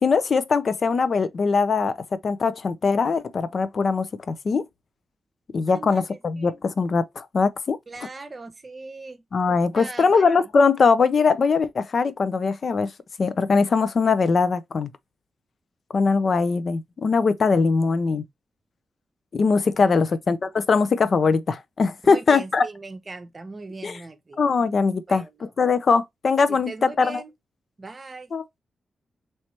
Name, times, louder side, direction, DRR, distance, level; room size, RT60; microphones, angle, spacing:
voice 1, 0.0-2.0 2.2-4.6 5.5-7.8 9.3-12.9 13.2-14.9 15.9-18.3 19.3-22.6 23.8-23.9 24.4-25.2 25.6-27.2 28.3-28.4, left 4 dB, 55° left, 0.5 m, -21 dB
voice 2, 5.7-6.6 7.9-9.2 9.7-10.3 19.8-20.0 22.0-24.4 25.1-25.5 26.5-27.3 27.8-28.3, right 3 dB, 35° right, 0.8 m, -39 dB
3.1 x 3.0 x 4.3 m
cardioid pair, 75°, 0 cm